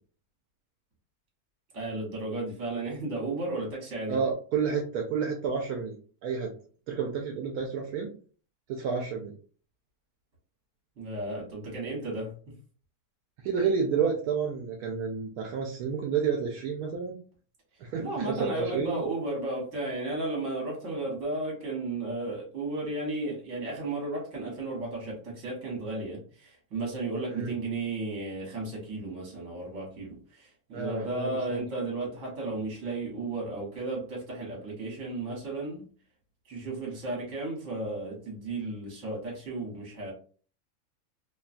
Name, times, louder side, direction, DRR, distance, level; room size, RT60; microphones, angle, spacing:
voice 1, 1.7-4.2 11.0-12.3 18.0-35.8 36.4-40.1, right 2 dB, 55° right, -2 dB, 1.5 m, -34 dB
voice 2, 4.1-6.0 6.2-6.5 6.9-8.1 8.7-9.3 13.4-17.2 17.8-19.0 27.3-27.5 30.7-31.6, right 6 dB, 80° right, 1 dB, 1.1 m, -30 dB
2.9 x 2.3 x 2.4 m, 0.42 s
omnidirectional pair, 1.6 m